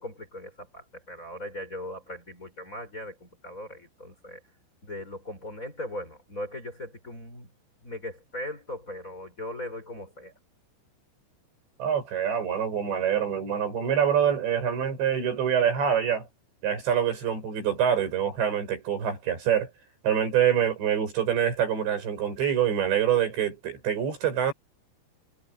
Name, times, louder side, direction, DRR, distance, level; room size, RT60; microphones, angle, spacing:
voice 1, 0.0-4.4 4.8-7.5 7.8-10.3, left 1 dB, 20° left, 4.8 m, -39 dB
voice 2, 11.8-16.3 16.6-19.7 20.0-24.5, right 9 dB, 75° right, 9.3 m, -25 dB
omnidirectional pair, 5.1 m